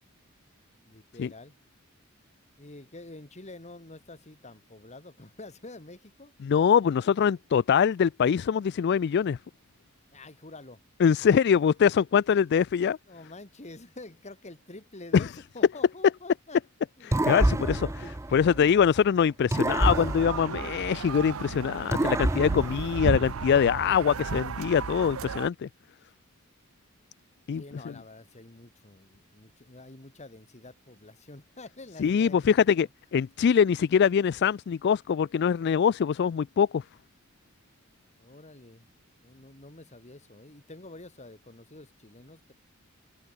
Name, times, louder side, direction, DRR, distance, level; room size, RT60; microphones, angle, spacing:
voice 1, 0.8-1.6 2.6-6.3 10.1-10.8 13.1-16.6 17.0-18.8 27.5-32.6 38.2-38.9 39.2-42.5, left 2 dB, 35° left, 1.9 m, -48 dB
voice 2, 6.4-9.4 11.0-13.0 15.1-15.2 17.1-17.8 18.3-25.7 27.5-27.6 32.0-32.9 33.1-36.8, left 7 dB, 55° left, 0.3 m, -23 dB
sound 1, 17.1-19.0 19.5-21.4 21.9-23.6, right 1 dB, 15° right, 0.6 m, -28 dB
sound 2, 19.7-25.5, right 5 dB, 85° right, 0.6 m, -34 dB
head